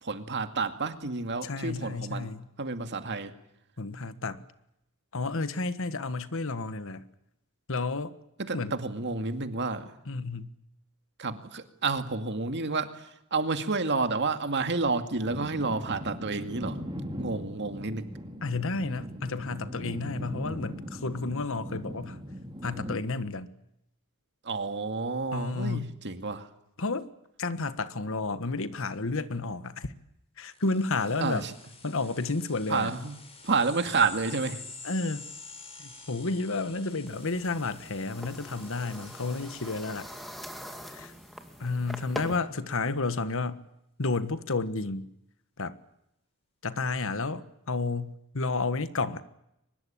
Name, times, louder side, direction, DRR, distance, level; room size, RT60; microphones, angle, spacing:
voice 1, 0.0-2.3 2.6-3.3 8.4-9.9 11.2-16.8 17.2-18.1 24.5-26.5 31.2-31.5 32.7-33.2 33.4-34.6, right 4 dB, 55° right, 2.2 m, -30 dB
voice 2, 1.4-2.5 3.8-4.5 5.1-7.0 7.7-8.1 8.5-8.8 10.0-10.5 18.4-22.2 22.6-23.5 25.3-25.9 26.8-27.1 27.4-29.9 30.4-31.5 31.8-32.9 34.8-35.3 35.8-40.1 40.9-41.1 41.6-43.6 44.0-45.1 45.6-45.7 46.6-49.2, left 3 dB, 65° left, 1.5 m, -31 dB
sound 1, 15.2-23.0, equal, 20° right, 3.8 m, -39 dB
sound 2, 30.5-41.6, left 4 dB, 25° left, 6.1 m, -48 dB
sound 3, 37.1-42.4, equal, ahead, 2.4 m, -43 dB
24.0 x 20.5 x 8.7 m
head